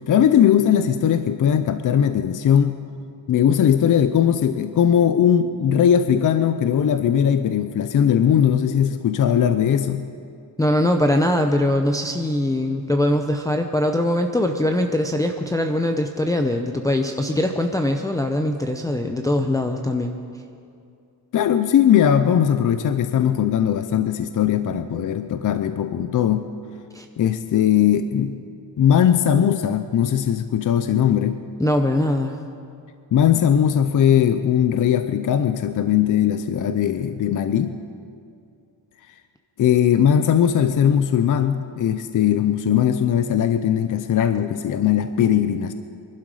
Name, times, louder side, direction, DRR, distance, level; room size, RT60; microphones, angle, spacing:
voice 1, 0.1-2.8 3.3-10.0 21.3-26.5 27.2-28.5 28.8-31.4 33.1-37.8 39.6-45.7, left 9 dB, 50° left, 10 dB, 0.6 m, -19 dB
voice 2, 10.6-20.1 26.9-27.0 31.6-32.4, left 1 dB, 10° left, 3 dB, 0.7 m, -22 dB
25.0 x 12.0 x 4.9 m, 2.4 s
cardioid pair, 125°, 41 cm